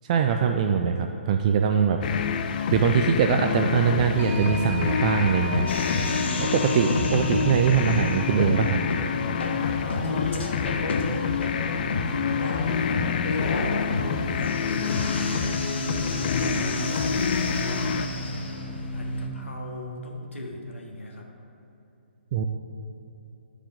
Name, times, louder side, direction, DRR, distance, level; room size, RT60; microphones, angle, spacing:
voice 1, 0.1-2.0 2.7-5.7 6.4-8.8 22.3-22.4, right 6 dB, 35° right, 5 dB, 0.4 m, -22 dB
sound 1, 2.0-18.1, left 7 dB, 45° left, 0.4 m, -28 dB
sound 2, 4.2-14.8, left 3 dB, 90° right, 1.6 m, -40 dB
sound 3, 5.7-19.3, left 1 dB, 65° left, 1.1 m, -30 dB
voice 2, 9.6-13.9 14.3-15.1 15.9-18.6 18.9-21.3, left 1 dB, 90° left, 0 dB, 1.4 m, -39 dB
10.0 x 4.9 x 3.8 m, 2.9 s
hypercardioid pair, 145°, 6 cm